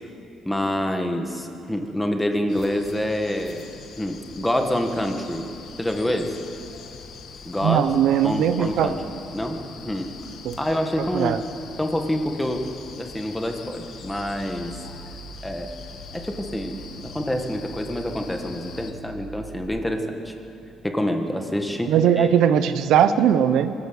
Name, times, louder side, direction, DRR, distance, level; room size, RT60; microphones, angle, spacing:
voice 1, 0.5-3.7 4.0-5.5 5.8-6.5 7.5-7.9 8.2-9.0 9.3-9.6 9.8-10.1 10.6-11.4 11.8-12.6 13.0-14.8 15.4-15.7 16.1-20.3 20.8-22.3, left 1 dB, 5° left, 4 dB, 1.8 m, -27 dB
sound 1, 2.5-18.9, left 6 dB, 60° left, 1.5 m, -43 dB
voice 2, 7.6-8.9 10.4-10.6 11.1-11.4 21.9-23.7, right 9 dB, 80° right, 11 dB, 0.9 m, -19 dB
sound 2, 14.0-19.6, right 1 dB, 90° left, 6.2 m, -44 dB
23.0 x 14.0 x 8.3 m, 2.6 s
cardioid pair, 130°, 0 cm